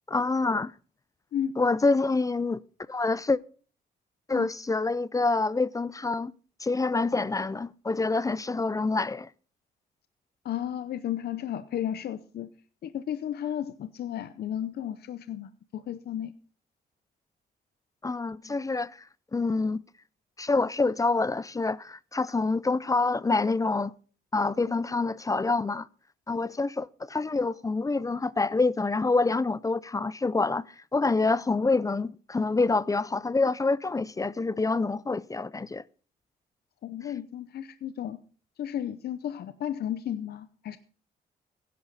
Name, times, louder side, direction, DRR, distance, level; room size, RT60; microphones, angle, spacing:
voice 1, 0.1-0.7 1.6-2.6 2.9-3.4 4.3-6.3 6.6-9.3 18.0-18.9 19.3-19.8 20.4-23.9 24.3-25.9 26.3-30.6 30.9-35.8, left 3 dB, 20° left, 0.5 m, -26 dB
voice 2, 10.4-12.5 12.8-16.3 36.8-38.2 38.6-40.8, left 10 dB, 70° left, 0.7 m, -33 dB
16.0 x 11.0 x 4.1 m
cardioid pair, 90°, 17 cm